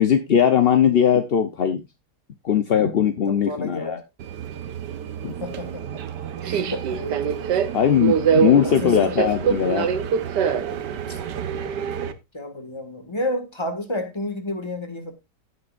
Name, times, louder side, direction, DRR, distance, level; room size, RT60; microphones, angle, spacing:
voice 1, 0.0-1.8 2.4-4.0 5.2-5.3 7.7-9.9, left 8 dB, 50° left, 0.7 m, -19 dB
voice 2, 3.3-4.0 5.4-6.0 6.4-7.5 8.6-9.2 11.0-11.2 12.3-15.1, left 1 dB, 15° left, 1.8 m, -31 dB
Subway metro underground, 4.2-12.1, right 7 dB, 75° right, 1.5 m, -25 dB
16.5 x 6.4 x 2.5 m
omnidirectional pair, 1.9 m